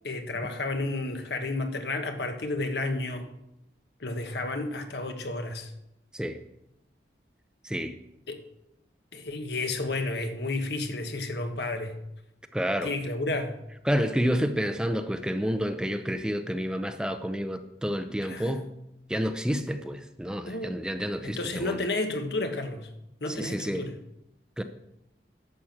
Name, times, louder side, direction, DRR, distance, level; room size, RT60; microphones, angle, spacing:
voice 1, 0.0-3.3 4.0-5.7 8.3-8.4 9.1-11.9 12.8-13.5 18.2-18.6 20.5-20.8 21.2-22.9 23.2-23.9, left 2 dB, 70° left, 6 dB, 1.3 m, -31 dB
voice 2, 7.6-8.0 12.5-12.9 13.8-18.7 19.1-21.8 23.3-23.9 24.6-24.7, equal, 5° right, 8 dB, 0.5 m, -29 dB
11.0 x 5.9 x 7.5 m, 0.84 s
head